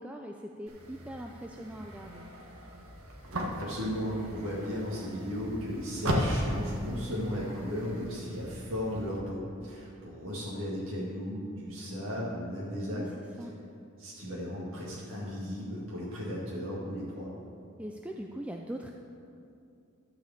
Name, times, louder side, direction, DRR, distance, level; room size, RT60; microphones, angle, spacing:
voice 1, 0.0-2.3 12.9-13.5 17.8-18.9, right 1 dB, 5° right, 1 dB, 0.3 m, -41 dB
sound 1, 0.7-9.2, equal, 85° right, 1.5 m, -37 dB
voice 2, 3.6-13.1 14.0-17.3, equal, 65° right, -7 dB, 2.1 m, -35 dB
13.0 x 5.1 x 7.2 m, 2.5 s
head